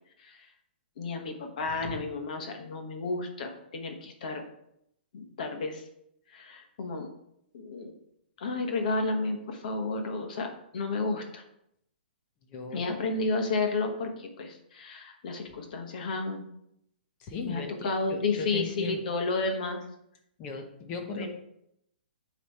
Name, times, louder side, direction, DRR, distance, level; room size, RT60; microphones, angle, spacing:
voice 1, 0.2-0.5 1.0-4.4 5.1-5.8 6.3-7.1 7.5-7.9 8.4-11.4 12.7-16.4 17.4-19.8 21.1-21.3, left 3 dB, 50° left, 4 dB, 1.2 m, -32 dB
voice 2, 12.5-12.8 17.2-19.0 20.4-21.3, left 4 dB, 20° left, 4 dB, 0.7 m, -38 dB
9.6 x 3.3 x 4.2 m, 0.76 s
hypercardioid pair, 170°, 6 cm